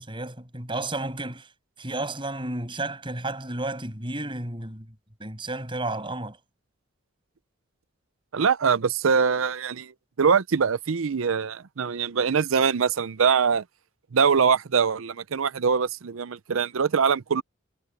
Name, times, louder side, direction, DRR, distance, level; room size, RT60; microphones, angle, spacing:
voice 1, 0.0-1.5 1.8-4.9 5.2-6.4, right 2 dB, 25° right, 6.6 m, -32 dB
voice 2, 8.3-9.9 10.2-13.6 14.1-17.4, right 6 dB, 70° right, 0.6 m, -23 dB
head